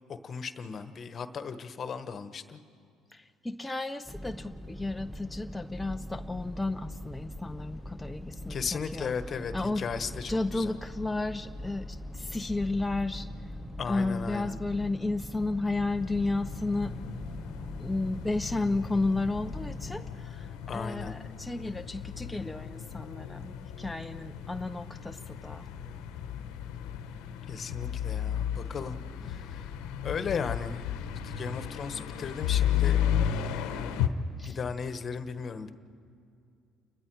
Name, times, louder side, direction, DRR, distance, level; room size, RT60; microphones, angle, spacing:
voice 1, 0.1-2.6 8.5-10.7 13.8-14.6 20.7-21.2 27.5-29.0 29.2-29.7 30.0-30.9 31.2-33.0 34.4-35.7, left 6 dB, 45° left, 10 dB, 1.2 m, -36 dB
voice 2, 3.1-9.1 9.5-9.9 10.3-13.3 13.8-17.0 17.8-25.7 34.4-34.6, left 2 dB, 10° left, 6 dB, 0.6 m, -33 dB
sound 1, 4.1-20.0, equal, 5° right, 1.8 m, -42 dB
sound 2, 15.8-34.1, left 9 dB, 80° left, 1.1 m, -34 dB
30.0 x 21.0 x 4.8 m, 2.5 s
supercardioid pair, 70°, 0 cm